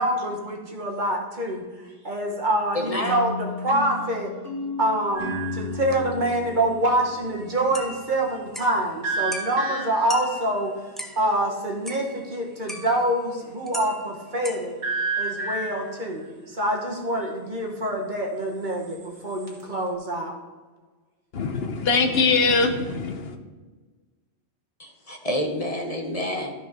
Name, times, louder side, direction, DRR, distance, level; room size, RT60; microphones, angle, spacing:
voice 1, 0.0-1.6 2.0-4.3 4.8-10.7 11.2-14.8 15.2-20.3, right 1 dB, 45° right, 0 dB, 1.6 m, -26 dB
voice 2, 2.7-3.1 24.8-26.5, left 1 dB, 35° left, 2 dB, 1.0 m, -28 dB
sound 1, 3.0-8.1, left 2 dB, 20° right, 1.7 m, -35 dB
sound 2, 5.2-5.7 9.0-10.2 14.8-16.0 18.7-19.6, right 4 dB, 70° right, 2.0 m, -30 dB
sound 3, 7.7-8.8 9.3-9.8 10.1-11.2 11.9-12.4 12.7-13.2 13.7-14.7, equal, ahead, 0.7 m, -38 dB
voice 3, 21.3-23.4, left 4 dB, 65° left, 7 dB, 1.0 m, -22 dB
13.0 x 4.9 x 5.3 m, 1.3 s
omnidirectional pair, 1.2 m